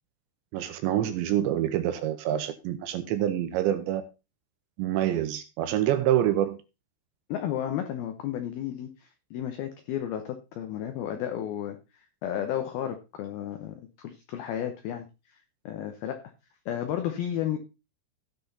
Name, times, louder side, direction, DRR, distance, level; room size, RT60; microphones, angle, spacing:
voice 1, 0.5-4.0 4.8-6.6, right 12 dB, 80° right, 9 dB, 2.8 m, -26 dB
voice 2, 7.3-15.4 15.7-16.2 16.7-17.6, left 10 dB, 90° left, 7 dB, 2.1 m, -33 dB
17.0 x 5.9 x 4.1 m, 0.29 s
omnidirectional pair, 5.7 m